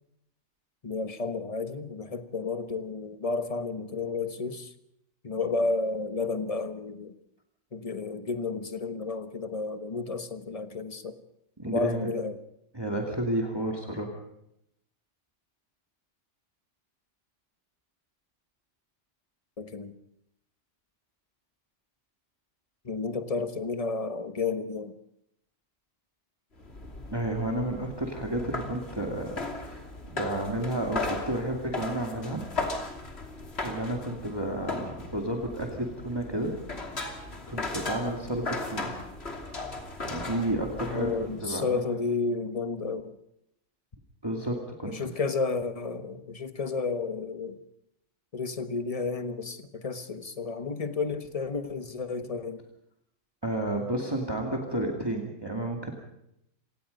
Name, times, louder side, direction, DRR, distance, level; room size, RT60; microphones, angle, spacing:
voice 1, 0.8-4.7 5.2-7.1 7.7-11.2 11.7-12.4 19.6-19.9 22.8-24.9 40.9-43.2 44.8-47.6 48.3-52.6, left 4 dB, 30° left, 1.3 m, -32 dB
voice 2, 11.6-12.1 12.7-14.2 27.1-29.8 30.1-32.4 33.6-36.5 37.5-38.9 40.0-41.8 44.2-44.9 53.4-55.9, right 1 dB, 20° right, 2.4 m, -31 dB
sound 1, 26.6-41.5, left 2 dB, 60° left, 3.1 m, -37 dB
27.0 x 18.5 x 5.3 m
omnidirectional pair, 1.2 m